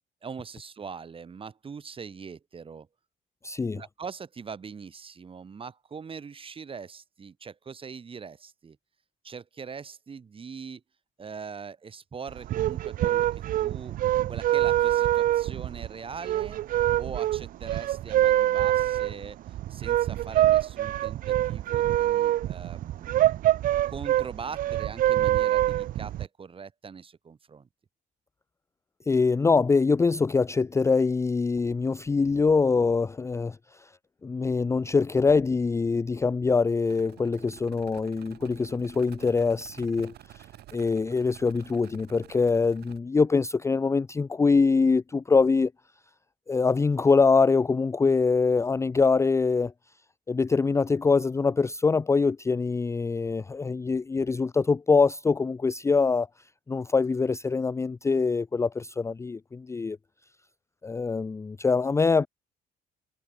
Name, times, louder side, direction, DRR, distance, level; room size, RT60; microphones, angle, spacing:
voice 1, 0.2-2.9 3.7-8.8 9.2-10.8 11.2-14.0 14.3-23.3 23.9-27.7, right 6 dB, 30° right, 4.2 m, -42 dB
voice 2, 3.4-3.8 29.1-33.9 34.2-40.4 40.7-45.7 46.5-49.7 50.3-56.3 56.7-60.0 60.8-62.3, left 4 dB, 15° left, 0.5 m, -24 dB
sound 1, 12.3-26.3, right 13 dB, 55° right, 0.5 m, -25 dB
sound 2, 36.8-43.0, right 14 dB, 70° right, 7.5 m, -50 dB
cardioid pair, 110°, 17 cm